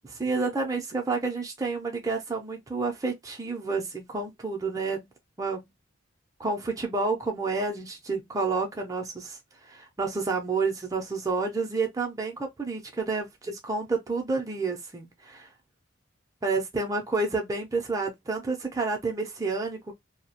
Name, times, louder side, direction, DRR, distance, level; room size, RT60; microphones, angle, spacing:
voice 1, 0.0-5.1 5.4-5.7 6.4-15.5 16.4-19.9, right 3 dB, 15° right, 0.4 m, -30 dB
2.3 x 2.0 x 2.8 m
head